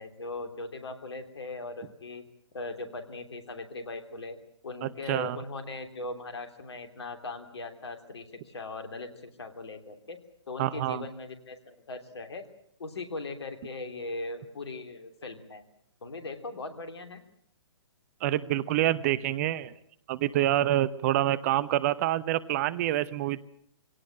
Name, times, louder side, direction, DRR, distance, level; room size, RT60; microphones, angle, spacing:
voice 1, 0.0-2.2 2.5-4.4 4.6-10.2 10.5-12.4 12.8-15.6 16.0-17.2, left 3 dB, 65° left, 8 dB, 3.2 m, -39 dB
voice 2, 4.8-5.4 10.6-11.1 18.2-19.7 20.1-23.4, right 13 dB, 35° right, 18 dB, 0.8 m, -27 dB
23.5 x 17.5 x 8.8 m, 0.69 s
figure-of-eight pair, 125°, 15 cm